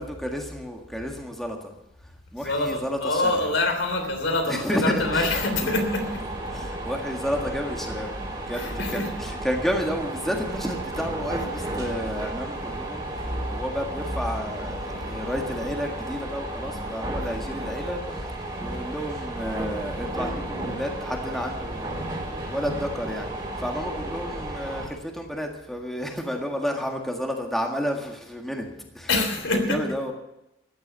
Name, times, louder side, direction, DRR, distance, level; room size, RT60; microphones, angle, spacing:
voice 1, 0.0-1.7 2.0-3.6 4.5-5.7 6.5-8.1 8.5-13.1 13.5-18.4 18.6-28.7 28.9-29.1 29.5-30.1, equal, ahead, 1 dB, 1.8 m, -31 dB
voice 2, 2.4-6.3 8.5-9.1 11.5-11.7 13.3-13.4 29.1-29.9, left 2 dB, 80° left, 5 dB, 3.3 m, -26 dB
sound 1, 5.0-24.9, right 1 dB, 25° right, 3.5 m, -33 dB
14.5 x 10.5 x 6.9 m, 0.88 s
head